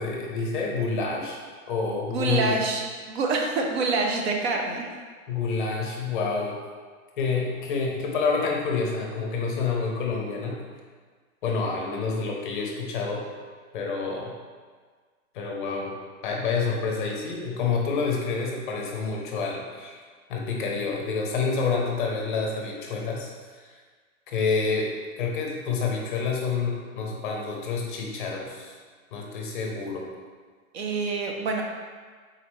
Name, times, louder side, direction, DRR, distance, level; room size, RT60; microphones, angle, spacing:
voice 1, 0.0-1.4 1.7-2.5 5.3-6.6 7.2-10.6 11.4-13.2 13.7-14.3 15.3-15.9 16.2-20.0 20.3-23.3 23.6-23.8 24.3-24.9 25.2-28.7 29.1-30.1, left 4 dB, 35° left, 0 dB, 0.6 m, -28 dB
voice 2, 2.1-2.8 3.1-4.9 30.7-31.6, right 3 dB, 50° right, 2 dB, 0.6 m, -26 dB
3.9 x 3.1 x 3.0 m, 1.6 s
hypercardioid pair, 160°, 43 cm